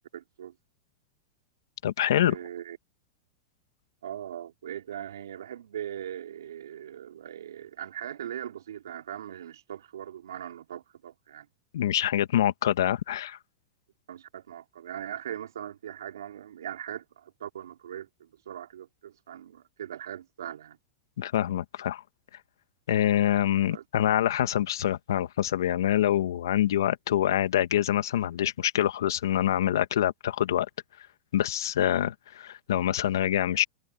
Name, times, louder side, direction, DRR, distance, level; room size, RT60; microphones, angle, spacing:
voice 1, 0.1-0.5 2.2-2.8 4.0-11.5 14.1-20.8 23.7-23.8, right 10 dB, 90° right, 4.1 m, -40 dB
voice 2, 1.8-2.4 11.7-13.4 21.2-22.0 22.9-30.7 31.3-33.6, left 11 dB, 80° left, 1.9 m, -25 dB
hypercardioid pair, 120°, 2 cm